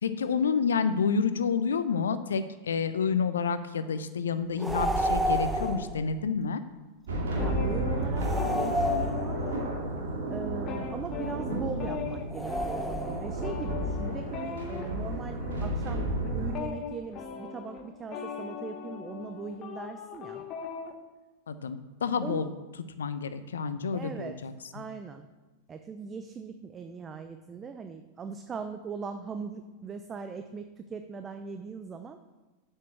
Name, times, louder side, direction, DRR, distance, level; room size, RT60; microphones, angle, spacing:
voice 1, 0.0-6.6 21.5-22.5 23.0-24.5, left 6 dB, 75° left, 12 dB, 0.7 m, -29 dB
sound 1, 4.6-5.9 8.2-9.6 12.3-13.4, equal, 5° right, 1.2 m, -30 dB
sound 2, 7.1-16.6, right 1 dB, 70° right, 2.3 m, -32 dB
sound 3, 7.3-10.0 10.3-20.9, left 6 dB, 40° left, 1.1 m, -39 dB
voice 2, 7.4-9.4 10.3-20.4 22.2-22.5 23.9-24.4 24.7-25.3 25.7-32.2, right 5 dB, 25° right, 8 dB, 0.6 m, -40 dB
7.5 x 6.5 x 7.2 m, 1.2 s
figure-of-eight pair, 95°, 0 cm